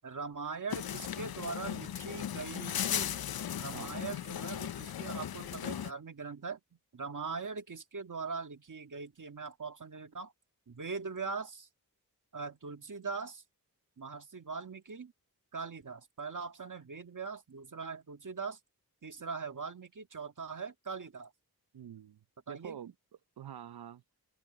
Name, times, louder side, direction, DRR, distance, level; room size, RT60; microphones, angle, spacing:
voice 1, 0.0-3.2 3.6-6.6 6.9-10.3 10.7-11.7 12.3-13.4 14.0-15.1 15.5-18.6 19.0-21.3 22.5-22.8, right 5 dB, 55° right, 1.9 m, -41 dB
sound 1, 0.7-5.9, left 9 dB, 70° left, 0.6 m, -37 dB
voice 2, 3.7-4.0 21.7-22.9 23.4-24.0, right 9 dB, 80° right, 0.7 m, -47 dB
wide cardioid pair, 105°, 37 cm